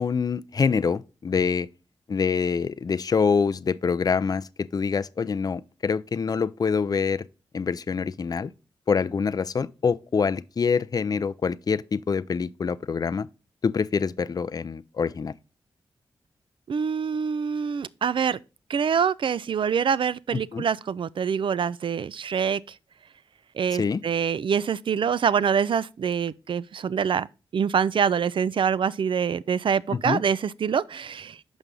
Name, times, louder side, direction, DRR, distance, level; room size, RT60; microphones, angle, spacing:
voice 1, 0.0-1.7 2.1-7.2 7.5-8.5 8.9-13.3 13.6-15.3 20.3-20.6 23.8-24.0 29.9-30.2, left 5 dB, 40° left, 0.4 m, -25 dB
voice 2, 16.7-18.4 18.7-22.6 23.6-27.3 27.5-31.4, right 7 dB, 55° right, 0.3 m, -25 dB
6.1 x 5.4 x 3.7 m
supercardioid pair, 45°, 10 cm